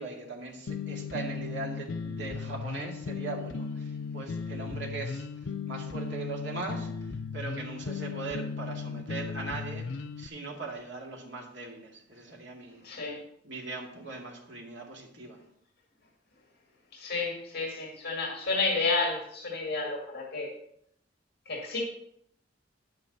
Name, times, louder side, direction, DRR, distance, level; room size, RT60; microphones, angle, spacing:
voice 1, 0.0-9.9 10.2-12.9 13.4-15.4, right 3 dB, 70° right, 0 dB, 2.2 m, -40 dB
sound 1, 0.7-10.3, left 5 dB, 85° left, 0.5 m, -36 dB
voice 2, 12.8-13.2 16.9-20.5 21.5-21.8, left 3 dB, 55° left, -2 dB, 2.1 m, -31 dB
10.5 x 9.1 x 4.1 m, 0.73 s
head